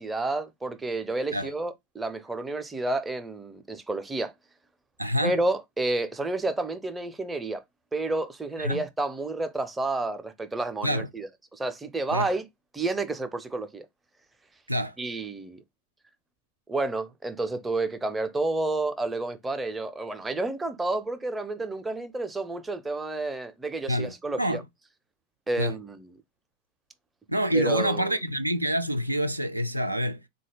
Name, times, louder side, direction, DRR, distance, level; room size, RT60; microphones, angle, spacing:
voice 1, 0.0-4.3 5.2-7.6 7.9-12.4 12.7-13.9 15.0-15.6 16.7-24.6 25.5-26.1 27.5-28.1, right 2 dB, 10° right, 0.5 m, -30 dB
voice 2, 5.0-5.4 8.6-8.9 10.8-11.1 12.1-12.3 14.7-15.0 23.9-24.1 24.4-24.6 25.6-25.8 27.3-30.2, equal, 85° right, 0.3 m, -27 dB
3.8 x 2.2 x 3.2 m
figure-of-eight pair, 90°, 0 cm